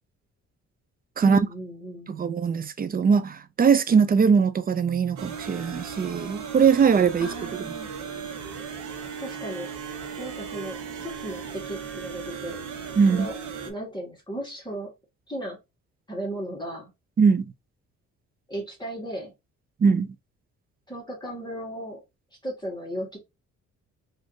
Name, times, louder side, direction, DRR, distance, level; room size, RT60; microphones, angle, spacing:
voice 1, 1.2-2.1 7.2-7.9 9.2-9.7 10.2-12.6 13.1-13.4 13.6-14.9 15.3-15.6 16.1-16.9 18.5-19.3 20.9-22.0 22.4-23.2, right 1 dB, 15° left, 1.7 m, -35 dB
voice 2, 2.1-7.3 13.0-13.3 17.2-17.5 19.8-20.1, right 6 dB, 30° right, 0.5 m, -21 dB
sound 1, 5.2-13.7, right 6 dB, 80° right, 1.0 m, -36 dB
4.0 x 2.6 x 3.2 m
cardioid pair, 90°, 30 cm